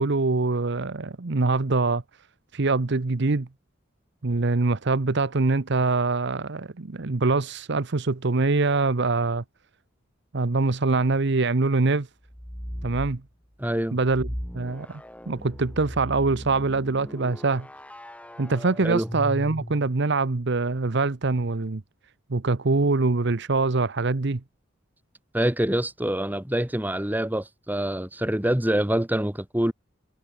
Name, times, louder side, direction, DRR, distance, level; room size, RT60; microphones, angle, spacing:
voice 1, 0.0-2.0 2.5-3.5 4.2-9.4 10.3-12.1 12.8-13.2 13.9-15.0 15.3-17.7 18.4-21.8 22.3-24.4, right 3 dB, 60° right, 0.9 m, -24 dB
sound 1, 12.2-13.2 14.0-20.0, equal, 5° left, 4.1 m, -37 dB
voice 2, 13.6-14.0 18.8-19.1 25.3-29.7, right 1 dB, 10° right, 1.4 m, -25 dB
head